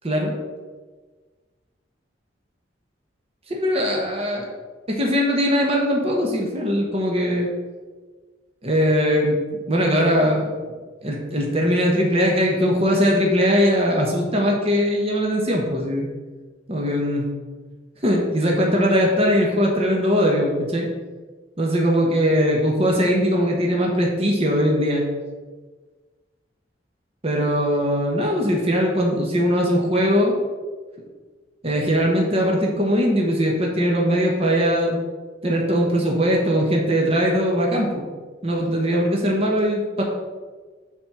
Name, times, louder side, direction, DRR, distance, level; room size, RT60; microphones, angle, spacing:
voice 1, 3.6-4.4 4.9-7.5 8.6-9.4 9.7-10.5 11.0-16.1 16.7-17.3 18.0-20.9 21.6-25.0 27.2-30.3 31.6-35.0 35.4-38.0 38.4-40.0, equal, 35° right, -1 dB, 1.1 m, -20 dB
7.2 x 4.3 x 6.0 m, 1.4 s
head